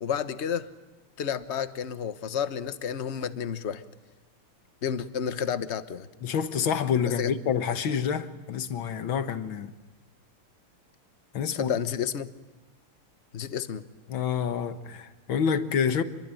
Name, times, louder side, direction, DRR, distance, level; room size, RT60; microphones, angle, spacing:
voice 1, 0.0-0.7 1.2-3.8 4.8-6.1 7.2-7.3 11.5-12.3 13.3-13.8, left 8 dB, 40° left, 1.1 m, -30 dB
voice 2, 6.2-9.7 11.3-11.8 14.1-16.0, left 7 dB, 65° left, 2.0 m, -28 dB
27.5 x 22.5 x 9.1 m
omnidirectional pair, 2.4 m